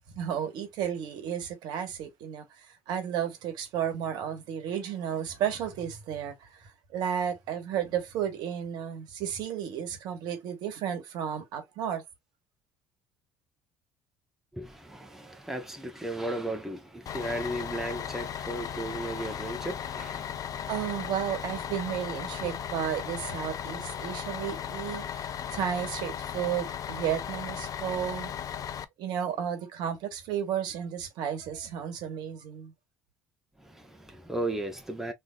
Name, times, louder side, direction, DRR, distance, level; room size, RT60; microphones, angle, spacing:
voice 1, 0.1-12.0 20.7-28.3 29.0-32.7, right 9 dB, 65° right, 1.3 m, -33 dB
voice 2, 14.5-20.7 22.4-22.5 33.6-35.1, right 1 dB, 5° right, 1.2 m, -35 dB
Bus, 17.1-28.8, left 9 dB, 50° left, 0.5 m, -36 dB
3.5 x 3.1 x 2.5 m
hypercardioid pair, 60°, 8 cm